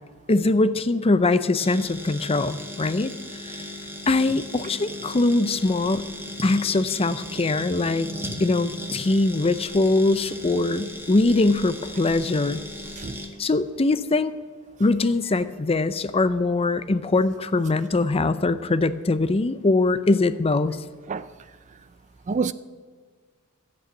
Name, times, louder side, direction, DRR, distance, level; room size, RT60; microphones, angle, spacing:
voice 1, 0.3-3.6 4.1-6.0 6.4-8.1 8.4-12.6 13.4-14.4 14.8-20.8, left 2 dB, 25° left, 0.5 m, -22 dB
sound 1, 1.6-13.3, left 1 dB, 10° right, 1.8 m, -37 dB
voice 2, 11.9-12.0 13.0-13.2 21.1-21.3 22.3-22.5, right 5 dB, 35° right, 0.4 m, -27 dB
14.0 x 8.6 x 8.1 m
head